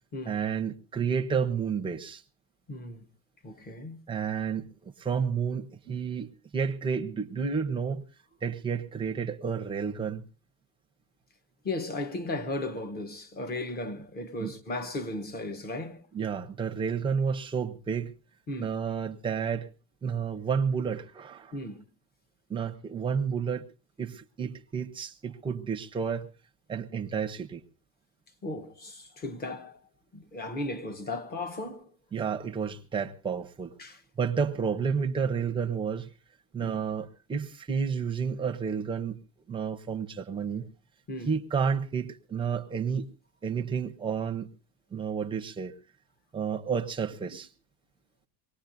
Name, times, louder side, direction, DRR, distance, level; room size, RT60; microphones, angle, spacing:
voice 1, 0.3-2.2 4.1-8.0 8.4-10.2 14.4-14.5 16.1-18.1 18.6-19.7 20.0-21.5 22.5-23.7 24.0-26.3 26.7-27.6 32.1-33.7 34.2-36.1 36.5-39.2 39.5-40.7 41.3-43.1 43.4-44.5 44.9-45.7 46.3-47.5, right 6 dB, 15° right, 0.7 m, -31 dB
voice 2, 2.7-3.0 3.4-4.0 11.6-16.0 18.5-18.7 21.5-21.8 28.4-29.8 30.1-31.9 33.8-34.0 36.6-36.7 41.1-41.3, left 2 dB, 25° left, 1.0 m, -36 dB
23.5 x 19.0 x 2.6 m
cardioid pair, 175°, 35 cm